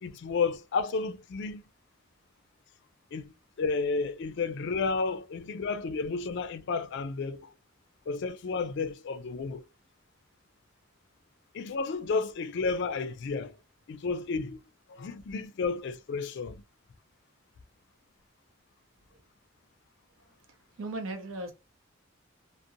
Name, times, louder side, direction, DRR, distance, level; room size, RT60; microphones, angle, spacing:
voice 1, 0.0-1.7 3.1-7.5 8.1-9.7 11.5-13.5 13.9-14.6 14.9-16.6, left 4 dB, 60° left, 0.3 m, -32 dB
voice 2, 20.2-21.5, right 2 dB, 80° right, 0.7 m, -39 dB
2.6 x 2.0 x 2.5 m
head